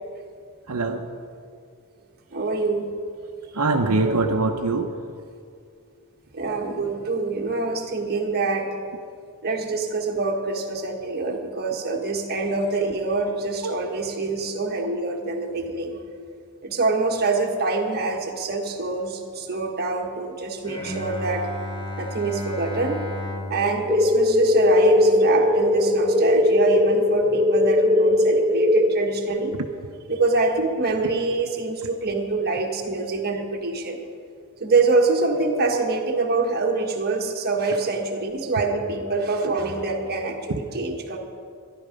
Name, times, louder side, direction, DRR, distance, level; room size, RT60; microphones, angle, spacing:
voice 1, 0.7-1.1 3.5-5.0 13.6-13.8 29.5-29.7 40.5-40.6, right 3 dB, 80° right, 3 dB, 0.8 m, -23 dB
voice 2, 2.3-2.9 6.3-8.7 9.4-16.0 16.6-21.5 22.0-23.0 23.5-29.5 30.1-34.0 34.6-41.2, right 3 dB, 45° right, 1 dB, 1.5 m, -25 dB
Bowed string instrument, 20.6-25.9, left 1 dB, 20° left, 1.4 m, -35 dB
sound 1, 23.9-28.9, left 1 dB, 5° right, 0.8 m, -19 dB
13.0 x 11.5 x 5.2 m, 2.3 s
head